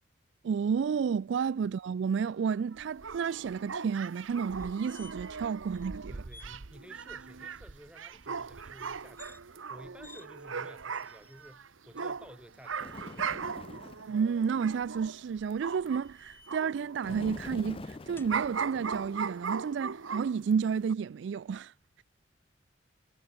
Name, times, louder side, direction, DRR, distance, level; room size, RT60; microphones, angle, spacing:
voice 1, 0.4-6.1 14.1-21.7, right 6 dB, 65° right, 0.3 m, -31 dB
sound 1, 2.7-16.1 16.5-20.5 20.9-21.0, right 5 dB, 85° right, 1.0 m, -39 dB
sound 2, 4.5-5.4 5.7-5.9 6.3-6.5 9.0-9.4 10.0-10.3 11.0-11.5 12.5-13.3 15.2-16.8 18.2-18.4, left 3 dB, 10° left, 3.1 m, -56 dB
voice 2, 6.1-13.4 13.7-14.0, equal, 5° right, 3.1 m, -53 dB
Bird, 12.8-14.2 17.0-19.5, left 2 dB, 30° left, 0.5 m, -45 dB
head